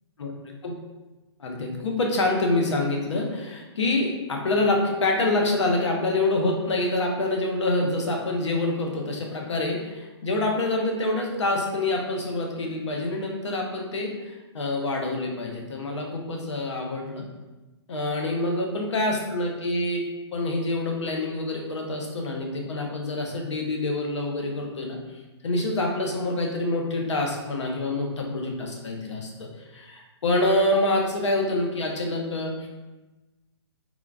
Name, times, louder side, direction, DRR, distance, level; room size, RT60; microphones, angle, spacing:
voice 1, 1.4-17.2 17.9-20.0 20.3-25.0 25.4-32.7, left 2 dB, 85° left, 1 dB, 0.7 m, -26 dB
3.7 x 2.3 x 2.3 m, 1.1 s
hypercardioid pair, 165°, 15 cm